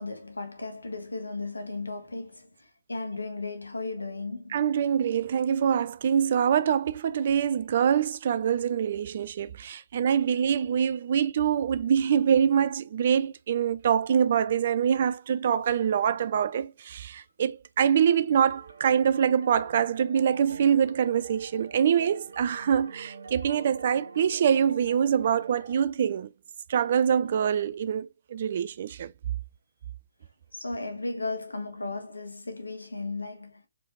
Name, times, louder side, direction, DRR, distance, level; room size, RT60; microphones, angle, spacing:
voice 1, 0.0-4.6 30.5-33.7, left 3 dB, 75° left, 1.3 m, -35 dB
voice 2, 4.5-26.3 26.7-29.1, right 8 dB, 40° right, 0.4 m, -25 dB
sound 1, 18.5-25.8, right 4 dB, 60° right, 0.9 m, -45 dB
4.8 x 3.4 x 2.4 m
figure-of-eight pair, 135°, 0 cm